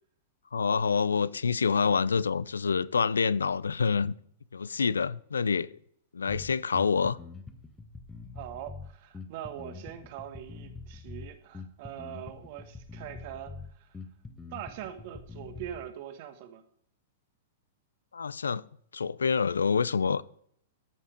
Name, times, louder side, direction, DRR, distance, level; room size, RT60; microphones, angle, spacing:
voice 1, 0.5-4.1 4.5-5.7 6.1-7.2 18.1-18.6 18.9-20.2, left 5 dB, 90° left, 0.4 m, -27 dB
Bass guitar, 6.3-15.9, left 4 dB, 15° left, 1.3 m, -45 dB
voice 2, 8.3-14.0 14.5-16.6, right 10 dB, 55° right, 1.2 m, -42 dB
13.5 x 5.7 x 5.1 m
hypercardioid pair, 110°, 0 cm